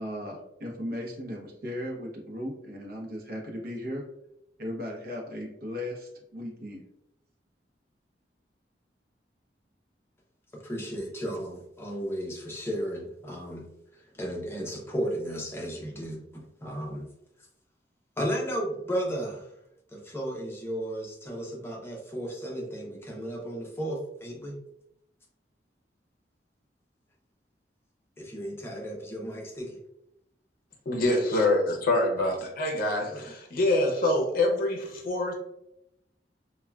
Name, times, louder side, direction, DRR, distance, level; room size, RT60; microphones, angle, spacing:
voice 1, 0.0-4.0 4.6-6.8, left 1 dB, 60° right, 0 dB, 0.7 m, -36 dB
voice 2, 10.6-13.7 13.9-17.1 18.2-19.5 19.9-24.5 28.2-29.8 33.1-33.3, equal, 15° left, -2 dB, 0.6 m, -34 dB
voice 3, 30.9-35.4, left 1 dB, 55° left, 1 dB, 0.6 m, -25 dB
3.5 x 2.2 x 2.2 m, 0.81 s
head